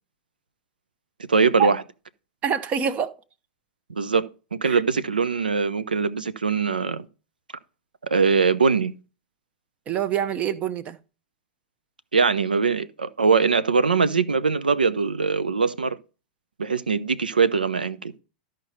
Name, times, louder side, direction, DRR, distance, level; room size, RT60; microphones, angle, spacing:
voice 1, 1.3-1.8 3.9-4.3 4.5-7.1 8.0-8.9 12.1-16.0 16.6-18.1, right 5 dB, 75° right, 0.7 m, -22 dB
voice 2, 2.4-3.1 4.6-4.8 9.9-11.0, right 8 dB, 30° right, 0.9 m, -25 dB
13.0 x 5.1 x 4.2 m
figure-of-eight pair, 95°, 5 cm